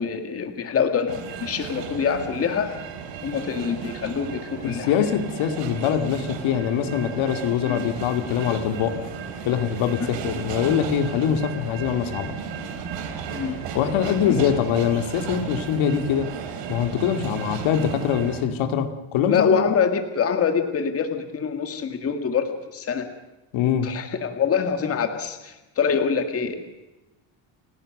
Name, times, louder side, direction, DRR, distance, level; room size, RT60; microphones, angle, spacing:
voice 1, 0.0-2.7 3.2-5.0 7.7-7.9 10.0-10.2 13.3-13.6 14.3-14.5 19.3-23.1 23.8-26.5, left 6 dB, 30° left, 7 dB, 1.9 m, -25 dB
sound 1, 1.1-18.4, right 6 dB, 65° right, 3.9 m, -35 dB
voice 2, 4.6-9.0 9.5-12.4 13.7-16.3 16.7-19.8 23.5-23.9, left 8 dB, 75° left, 7 dB, 2.5 m, -23 dB
30.0 x 17.0 x 6.6 m, 1.0 s
cardioid pair, 180°, 47 cm